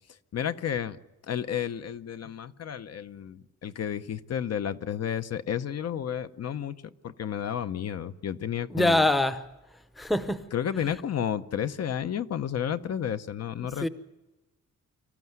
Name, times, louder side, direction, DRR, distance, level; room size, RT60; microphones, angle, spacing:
voice 1, 0.3-1.0 1.3-9.0 10.5-13.9, left 9 dB, 55° left, 0.8 m, -32 dB
voice 2, 8.7-9.4 10.0-10.5 13.8-13.9, left 1 dB, ahead, 0.7 m, -24 dB
25.5 x 15.0 x 9.5 m
wide cardioid pair, 180°, 32 cm